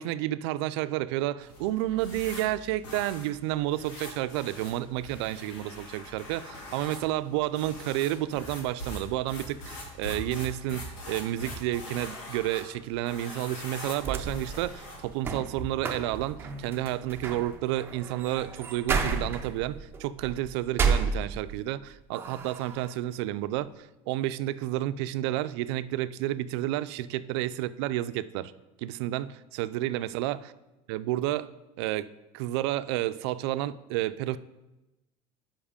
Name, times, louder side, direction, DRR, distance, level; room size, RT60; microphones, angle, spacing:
voice 1, 0.0-28.5 28.8-30.4 30.9-31.5 31.8-34.4, right 14 dB, 85° right, 14 dB, 0.4 m, -31 dB
sound 1, 1.4-15.2, left 1 dB, 85° left, 2.2 m, -43 dB
sound 2, 14.0-21.7 22.1-22.9, right 5 dB, 15° right, 0.5 m, -32 dB
7.2 x 5.4 x 5.0 m, 1.0 s
cardioid pair, 165°, 14 cm